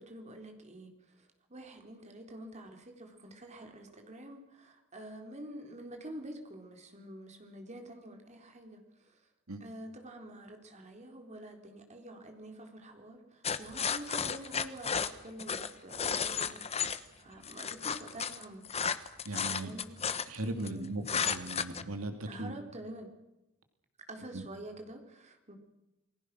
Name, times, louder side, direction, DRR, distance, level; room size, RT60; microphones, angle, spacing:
voice 1, 0.0-9.2 9.6-16.6 17.1-18.6 19.5-19.9 20.6-20.9 22.3-23.1 24.0-25.6, right 1 dB, 30° right, 4 dB, 4.1 m, -47 dB
sound 1, 13.4-17.0 17.4-20.7 21.1-21.8, left 6 dB, 30° left, 1.0 m, -33 dB
voice 2, 19.2-19.7 20.3-22.5 24.3-24.4, right 2 dB, 70° right, 7 dB, 2.7 m, -38 dB
28.5 x 20.5 x 6.3 m, 0.97 s
head